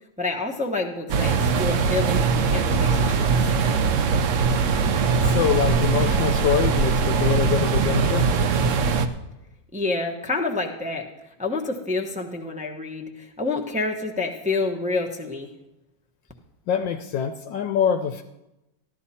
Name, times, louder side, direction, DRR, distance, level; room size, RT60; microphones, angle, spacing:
voice 1, 0.2-2.2 2.5-3.3 9.7-11.1 11.4-15.5, left 3 dB, 10° right, 1 dB, 0.5 m, -28 dB
sound 1, 1.1-9.1, right 5 dB, 70° right, 0.7 m, -21 dB
voice 2, 5.2-8.3 16.7-18.2, left 8 dB, 75° left, 7 dB, 1.3 m, -24 dB
14.0 x 12.0 x 4.2 m, 0.93 s
omnidirectional pair, 2.1 m